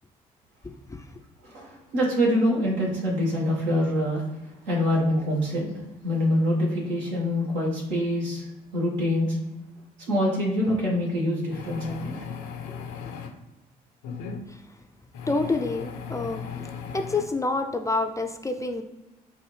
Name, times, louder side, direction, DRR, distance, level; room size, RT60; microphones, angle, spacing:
voice 1, 1.4-4.2 4.7-5.7 6.0-8.4 8.7-9.4 10.1-12.2, equal, 70° right, -3 dB, 1.4 m, -25 dB
sound 1, 10.6-10.8 11.5-13.3 14.0-14.4 15.1-17.2, left 6 dB, 75° left, 0.6 m, -37 dB
voice 2, 15.3-16.4 16.9-18.8, left 3 dB, 15° left, 5 dB, 0.4 m, -27 dB
4.6 x 2.6 x 3.2 m, 1.0 s
hypercardioid pair, 45°, 20 cm